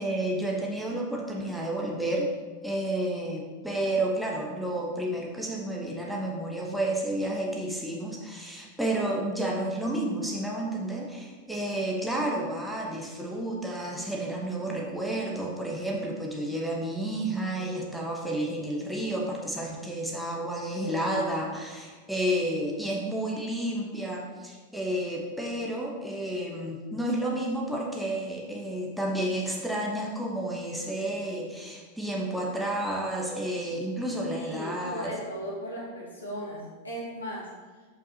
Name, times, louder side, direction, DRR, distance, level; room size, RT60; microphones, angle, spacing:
voice 1, 0.0-2.3 2.6-35.1, right 1 dB, ahead, -3 dB, 0.9 m, -31 dB
voice 2, 34.3-37.5, equal, 75° left, -5 dB, 2.0 m, -37 dB
7.1 x 5.5 x 2.8 m, 1.4 s
figure-of-eight pair, 90°, 0 cm